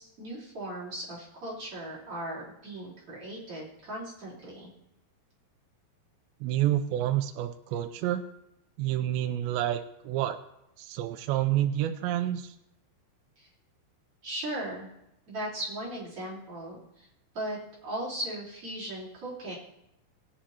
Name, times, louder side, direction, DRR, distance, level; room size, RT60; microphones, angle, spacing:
voice 1, 0.0-4.7 13.4-13.5 14.2-14.9 15.3-17.1 17.3-19.6, right 1 dB, 30° right, -7 dB, 4.5 m, -37 dB
voice 2, 6.4-8.2 8.8-10.4 10.8-12.5, right 12 dB, 80° right, 7 dB, 2.7 m, -28 dB
19.0 x 9.9 x 2.9 m, 0.86 s
omnidirectional pair, 5.2 m